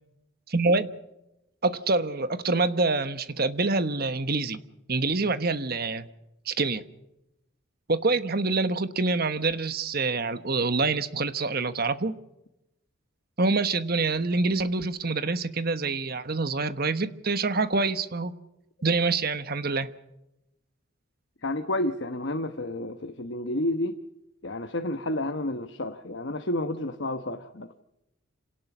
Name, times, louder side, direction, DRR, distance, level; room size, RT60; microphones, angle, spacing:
voice 1, 0.5-0.9 1.6-4.6 4.9-6.1 6.5-6.8 7.9-12.1 13.4-18.3 18.8-19.9, right 3 dB, 45° right, 12 dB, 1.2 m, -26 dB
voice 2, 21.4-24.0 24.4-27.8, left 1 dB, 60° left, 7 dB, 1.2 m, -30 dB
27.5 x 18.0 x 6.1 m, 0.89 s
head